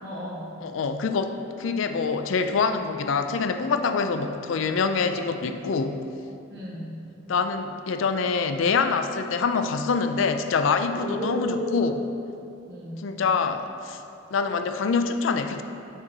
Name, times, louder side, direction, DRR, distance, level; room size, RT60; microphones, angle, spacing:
voice 1, 0.0-0.5 6.5-7.0 11.0-11.8 12.7-13.1, equal, 55° right, -6 dB, 1.7 m, -33 dB
voice 2, 0.6-6.0 7.3-11.9 13.0-14.0 14.3-15.6, left 5 dB, 70° left, 8 dB, 0.4 m, -25 dB
6.3 x 3.9 x 6.1 m, 2.6 s
head